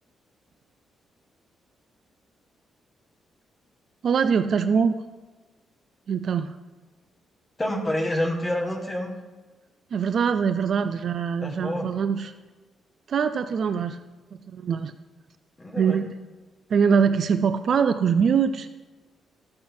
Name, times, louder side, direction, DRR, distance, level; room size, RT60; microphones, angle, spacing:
voice 1, 4.0-5.0 6.1-6.5 9.9-12.3 13.1-14.0 14.5-14.9 15.8-16.1 16.7-18.7, right 6 dB, 45° right, 10 dB, 0.4 m, -23 dB
voice 2, 7.6-9.1 11.4-11.9 15.6-16.0, left 1 dB, 15° left, 1 dB, 1.4 m, -27 dB
13.0 x 7.5 x 4.4 m, 1.2 s
cardioid pair, 175°, 0 cm